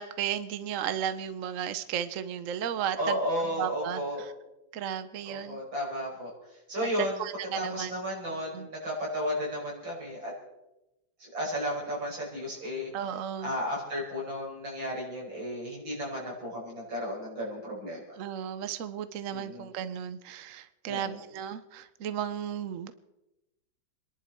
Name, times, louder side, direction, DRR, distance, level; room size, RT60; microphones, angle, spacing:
voice 1, 0.0-3.2 3.6-4.3 4.7-5.6 6.8-7.9 8.5-8.7 12.9-13.5 18.2-22.9, right 9 dB, 55° right, 12 dB, 1.0 m, -34 dB
voice 2, 3.0-4.2 5.2-6.3 6.7-7.2 7.5-10.3 11.2-12.9 13.4-18.0 19.3-19.7 20.9-21.2, equal, 85° right, -3 dB, 6.2 m, -33 dB
27.0 x 11.0 x 4.4 m, 0.94 s
omnidirectional pair, 2.0 m